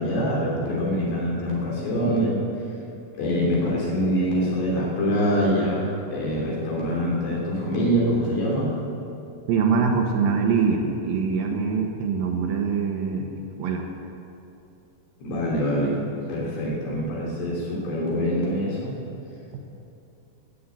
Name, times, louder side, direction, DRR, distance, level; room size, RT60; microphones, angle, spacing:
voice 1, 0.0-2.4 3.2-8.7 15.2-16.0 16.3-18.9, equal, 75° left, -4 dB, 5.4 m, -24 dB
voice 2, 9.5-13.8, right 5 dB, 70° right, 1 dB, 2.7 m, -24 dB
14.0 x 9.4 x 8.3 m, 2.7 s
omnidirectional pair, 4.8 m